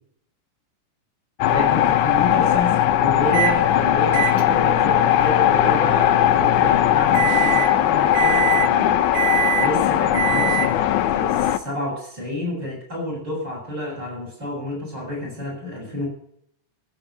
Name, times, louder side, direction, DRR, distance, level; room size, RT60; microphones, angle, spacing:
sound 1, 1.4-11.6, left 11 dB, 85° left, 2.2 m, -19 dB
voice 1, 1.5-9.0 9.6-10.8 11.1-16.1, left 1 dB, 35° right, -1 dB, 7.3 m, -29 dB
Microwave oven, 3.3-3.6 4.1-11.0, right 11 dB, 65° right, 1.9 m, -27 dB
16.0 x 6.0 x 8.8 m, 0.67 s
omnidirectional pair, 3.4 m